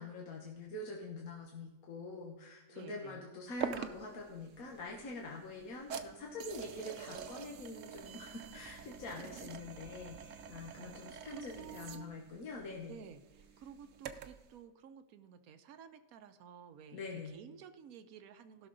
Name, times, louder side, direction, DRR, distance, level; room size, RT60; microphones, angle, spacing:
voice 1, 0.0-13.0 16.9-17.4, left 2 dB, 85° left, -1 dB, 1.6 m, -45 dB
voice 2, 2.7-3.2 10.8-12.1 12.9-18.7, right 7 dB, 90° right, 10 dB, 1.2 m, -53 dB
sound 1, 3.6-14.5, right 7 dB, 65° right, 1.0 m, -47 dB
16.0 x 6.2 x 3.9 m, 1.1 s
omnidirectional pair, 1.5 m